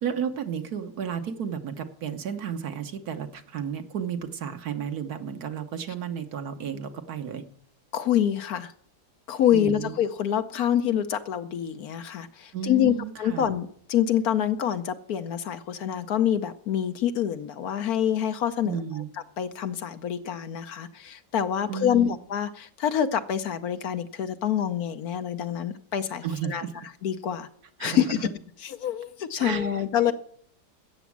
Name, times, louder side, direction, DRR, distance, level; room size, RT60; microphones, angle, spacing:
voice 1, 0.0-7.4 9.5-9.9 12.5-13.5 18.7-19.1 21.7-22.2 26.2-26.7 27.8-28.0 29.4-30.1, right 8 dB, 65° right, 7 dB, 1.5 m, -33 dB
voice 2, 7.9-8.7 9.3-18.8 19.4-26.6 27.0-27.5 27.8-28.2 28.6-30.1, left 10 dB, 65° left, 10 dB, 1.1 m, -26 dB
13.5 x 8.1 x 7.2 m, 0.63 s
omnidirectional pair, 1.8 m